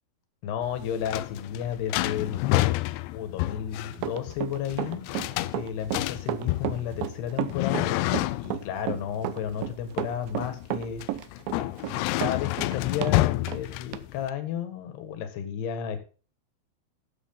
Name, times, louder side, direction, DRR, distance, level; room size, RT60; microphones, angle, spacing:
voice 1, 0.4-2.7 3.1-5.0 5.5-7.9 8.4-11.0 11.5-11.7 12.2-16.0, left 9 dB, 75° left, 10 dB, 3.7 m, -32 dB
sound 1, 0.6-14.3, left 18 dB, 90° left, 2.8 m, -29 dB
Run, 3.9-13.2 13.5-13.6 13.9-14.0, right 13 dB, 75° right, 2.2 m, -32 dB
13.5 x 8.0 x 3.8 m, 0.37 s
omnidirectional pair, 4.9 m